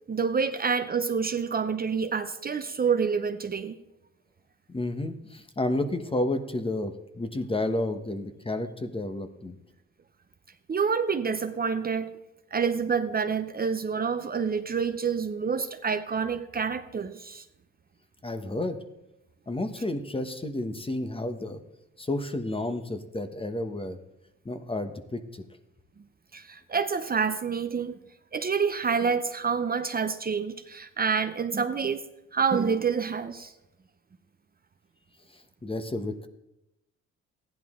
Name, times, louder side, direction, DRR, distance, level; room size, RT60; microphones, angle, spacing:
voice 1, 0.1-3.8 10.7-12.2 12.5-17.4 26.3-28.0 28.3-32.0 32.3-33.5, right 6 dB, 30° right, 8 dB, 0.7 m, -27 dB
voice 2, 4.7-9.5 18.2-18.8 19.5-21.6 22.0-24.0 24.4-25.4 35.3-36.3, left 1 dB, 20° left, 8 dB, 1.1 m, -31 dB
15.0 x 10.5 x 3.7 m, 0.88 s
cardioid pair, 90°, 30 cm